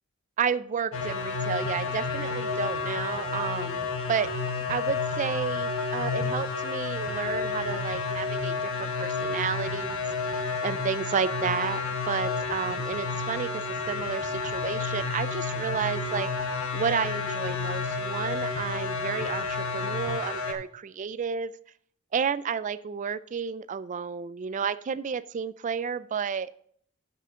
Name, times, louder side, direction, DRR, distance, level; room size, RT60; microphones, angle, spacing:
voice 1, 0.4-4.3 4.7-10.0 10.6-16.3 16.7-21.5 22.1-26.5, right 6 dB, 35° right, 16 dB, 0.3 m, -31 dB
sound 1, 0.9-20.5, left 4 dB, 70° left, 1.1 m, -30 dB
12.0 x 5.7 x 3.7 m, 0.62 s
head